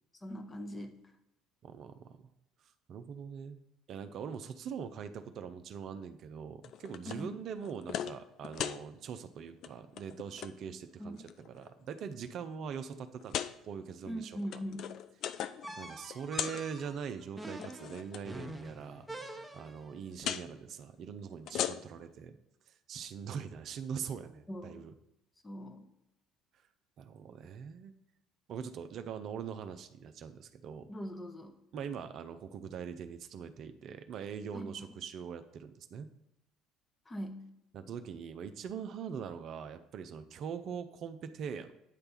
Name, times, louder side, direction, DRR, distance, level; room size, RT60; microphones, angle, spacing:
voice 1, 0.2-0.9 7.1-7.3 11.0-11.2 14.0-14.9 24.5-24.8 25.4-25.8 30.9-31.5 34.5-34.7 37.1-37.4, equal, 20° left, 6 dB, 0.9 m, -41 dB
voice 2, 1.6-2.3 2.9-3.6 3.9-14.6 15.8-22.4 22.7-25.0 27.0-27.9 28.5-30.9 31.7-36.1 37.7-41.7, right 7 dB, 50° right, 9 dB, 0.5 m, -42 dB
sound 1, 6.6-7.2 7.6-8.2 8.4-8.8 9.5-9.7 10.0-10.5 11.2-11.7 12.3-12.4 13.2-13.5 14.3-15.7 16.0-16.6 17.5-18.2 20.2-20.5 21.3-22.1, left 10 dB, 55° left, 0.3 m, -38 dB
sound 2, 15.6-19.9, right 1 dB, 5° right, 1.0 m, -46 dB
9.0 x 3.3 x 5.6 m, 0.83 s
figure-of-eight pair, 55°, 0 cm